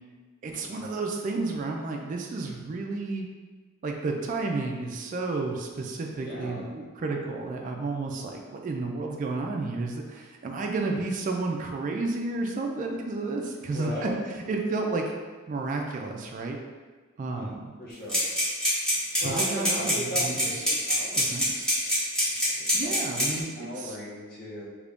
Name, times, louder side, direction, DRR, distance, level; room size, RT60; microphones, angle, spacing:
voice 1, 0.4-3.3 3.8-15.1 15.5-16.6 17.2-17.7 19.2-20.7 21.2-21.7 22.7-24.0, right 3 dB, 40° right, 1 dB, 0.3 m, -31 dB
voice 2, 6.2-6.7 13.7-14.2 17.3-18.2 19.2-21.4 21.7-21.9 22.6-24.6, equal, 50° left, -6 dB, 0.7 m, -38 dB
sound 1, 18.1-23.4, equal, 5° left, 1.0 m, -25 dB
2.9 x 2.5 x 3.4 m, 1.4 s
head